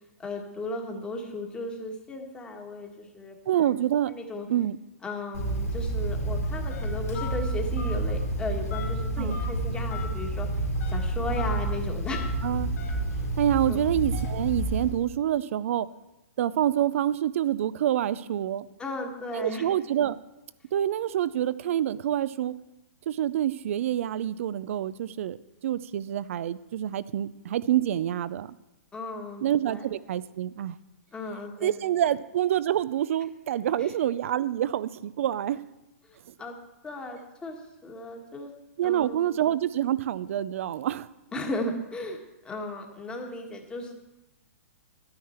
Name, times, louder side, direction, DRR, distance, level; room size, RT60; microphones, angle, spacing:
voice 1, 0.2-3.7 4.1-4.5 5.0-10.5 10.9-12.2 13.7-13.8 18.8-19.7 28.9-29.8 31.1-31.8 33.8-33.9 36.0-36.5 36.8-38.5 38.8-39.3 41.3-43.9, left 2 dB, 10° left, 2 dB, 1.5 m, -36 dB
voice 2, 3.5-4.1 4.5-4.8 9.2-9.4 12.4-12.7 13.4-15.9 16.4-18.7 19.3-20.2 20.7-22.5 23.1-25.4 25.6-28.5 29.4-30.8 31.6-35.6 38.8-41.1, right 11 dB, 60° right, 18 dB, 0.5 m, -27 dB
Telephone, 5.3-15.0, right 1 dB, 85° left, 3.1 m, -29 dB
11.5 x 9.6 x 4.4 m, 0.97 s
hypercardioid pair, 140°, 8 cm